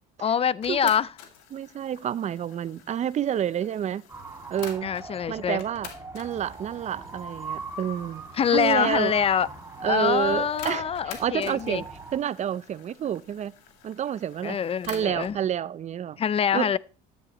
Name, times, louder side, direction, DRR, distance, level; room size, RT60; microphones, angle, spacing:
voice 1, 0.2-1.1 4.8-5.6 8.4-9.5 9.8-11.8 14.4-15.3 16.2-16.8, left 8 dB, 30° left, 0.5 m, -25 dB
sound 1, 0.6-5.1 5.6-15.4, left 8 dB, 80° left, 2.3 m, -48 dB
voice 2, 1.5-4.0 4.5-4.9 5.3-9.1 9.8-11.9 12.1-13.5 13.8-14.6 14.9-16.2 16.5-16.7, right 9 dB, 35° right, 0.5 m, -29 dB
sound 2, 4.1-12.2, right 3 dB, 15° right, 2.6 m, -41 dB
13.5 x 10.5 x 3.0 m
supercardioid pair, 90°, 19 cm